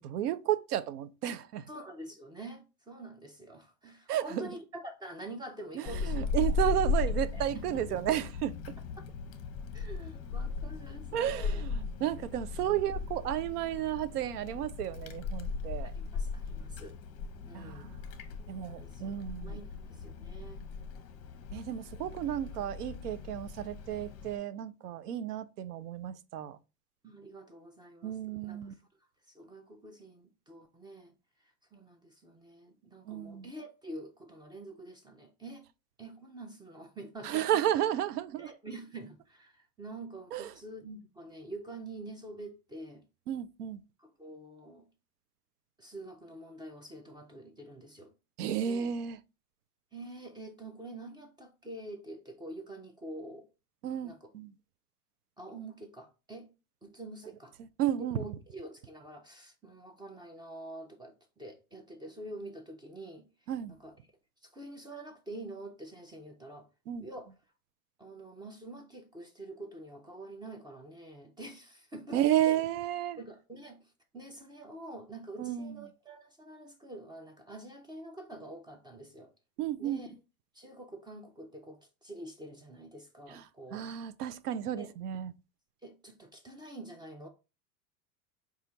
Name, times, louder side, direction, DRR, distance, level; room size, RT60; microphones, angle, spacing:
voice 1, 0.0-1.7 4.1-4.5 5.8-8.5 11.1-15.9 17.5-18.0 18.5-19.6 21.5-26.6 28.0-28.7 33.1-33.5 37.2-38.5 40.3-40.5 43.3-43.8 48.4-49.2 53.8-54.5 57.6-58.3 63.5-63.7 66.9-67.1 72.1-73.2 75.4-75.8 79.6-80.0 83.3-83.4 83.7-85.3, right 11 dB, 85° right, 0.5 m, -32 dB
voice 2, 1.7-6.3 6.7-6.9 7.3-8.0 9.7-11.6 15.9-17.0 17.4-17.9 18.4-19.2 19.4-20.7 27.0-28.8 29.3-31.1 31.7-35.6 36.0-37.6 38.4-43.0 44.0-44.9 45.8-48.1 48.6-48.9 49.9-53.5 54.0-54.3 55.4-56.5 56.8-57.5 58.0-63.3 63.7-63.9 64.4-66.7 67.0-67.3 68.0-72.6 73.2-73.8 74.1-79.3 79.8-80.1 80.5-83.9 84.8-84.9 85.8-87.3, right 1 dB, 10° right, 0.4 m, -46 dB
Wind, 5.9-24.4, left 4 dB, 35° left, 0.7 m, -37 dB
4.3 x 2.4 x 3.8 m
hypercardioid pair, 100°, 45 cm